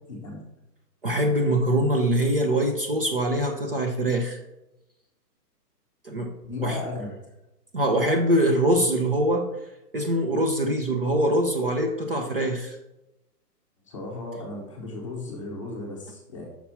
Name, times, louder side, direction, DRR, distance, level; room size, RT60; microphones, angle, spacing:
voice 1, 0.1-0.4 6.4-7.1 13.9-16.4, left 2 dB, 20° left, -2 dB, 0.9 m, -35 dB
voice 2, 1.0-4.4 6.0-6.3 6.6-6.8 7.7-9.5 9.9-12.8, right 1 dB, 35° right, 2 dB, 0.7 m, -23 dB
5.9 x 4.4 x 5.6 m, 0.93 s
hypercardioid pair, 175°, 49 cm